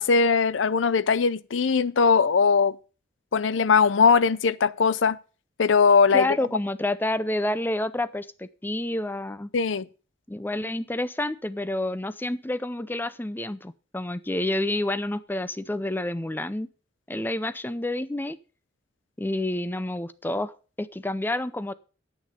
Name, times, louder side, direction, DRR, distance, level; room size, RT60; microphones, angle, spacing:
voice 1, 0.0-2.8 3.3-5.2 5.6-6.3 9.5-9.9, left 5 dB, 85° left, 0.6 m, -20 dB
voice 2, 6.1-9.5 10.3-16.7 17.1-18.4 19.2-20.5 20.8-21.7, left 1 dB, 10° left, 0.6 m, -29 dB
10.5 x 8.7 x 5.1 m
head